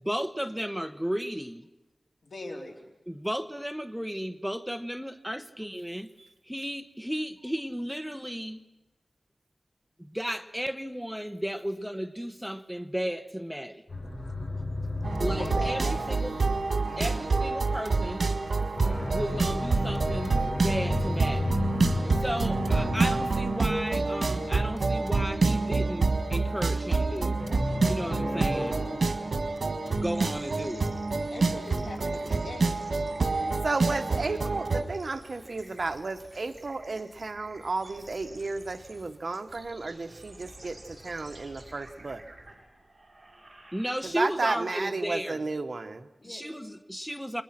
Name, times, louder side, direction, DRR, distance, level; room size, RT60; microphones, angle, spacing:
voice 1, 0.0-1.7 3.1-6.1 6.4-8.6 10.0-13.8 15.2-16.3 17.0-18.2 19.0-21.6 22.1-27.4 27.9-28.8 29.9-30.9 43.7-45.5 46.2-47.4, equal, 5° right, 0.9 m, -34 dB
voice 2, 2.2-2.9 15.4-16.6 16.8-17.2 27.6-27.9 31.3-32.9 46.2-46.8, left 2 dB, 85° left, 4.1 m, -42 dB
sound 1, 13.9-17.0 18.7-24.4 27.4-29.8, left 1 dB, 35° left, 6.2 m, -33 dB
sound 2, 15.0-34.8, right 3 dB, 80° right, 1.7 m, -27 dB
sound 3, 29.9-44.4, right 2 dB, 40° right, 6.4 m, -51 dB
voice 3, 33.6-42.2 44.1-46.1, right 3 dB, 65° right, 1.3 m, -33 dB
28.5 x 22.0 x 6.1 m
wide cardioid pair, 85°, 0 cm